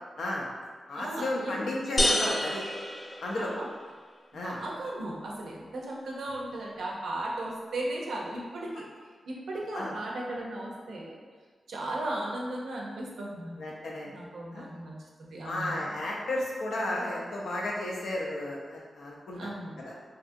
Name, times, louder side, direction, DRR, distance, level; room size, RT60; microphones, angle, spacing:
voice 1, 0.2-0.5 0.9-2.6 3.2-3.5 4.3-4.6 9.7-9.9 13.6-14.1 14.5-14.7 15.4-19.5 19.8-20.0, left 1 dB, 90° left, -3 dB, 0.5 m, -33 dB
voice 2, 0.9-1.6 3.3-3.7 4.3-8.8 9.3-11.2 11.7-13.8 14.0-15.9 19.3-19.9, right 1 dB, 85° right, -3 dB, 0.5 m, -36 dB
sound 1, 2.0-3.8, left 1 dB, 25° left, 0.4 m, -28 dB
2.6 x 2.3 x 2.6 m, 1.5 s
wide cardioid pair, 95°, 0 cm